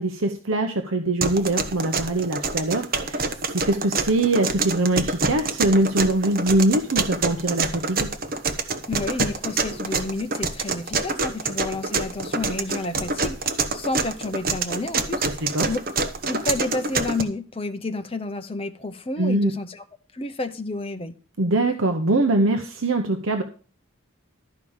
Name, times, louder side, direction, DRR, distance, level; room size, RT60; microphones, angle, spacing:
voice 1, 0.0-3.2 3.5-8.1 15.2-15.7 19.2-19.5 21.4-23.4, right 2 dB, 65° right, 0.9 m, -22 dB
sound 1, 1.2-17.2, right 4 dB, 40° right, 1.0 m, -26 dB
voice 2, 8.9-15.3 15.6-15.8 16.2-19.8 20.1-21.1, left 2 dB, 25° left, 0.8 m, -30 dB
12.5 x 4.9 x 7.2 m
head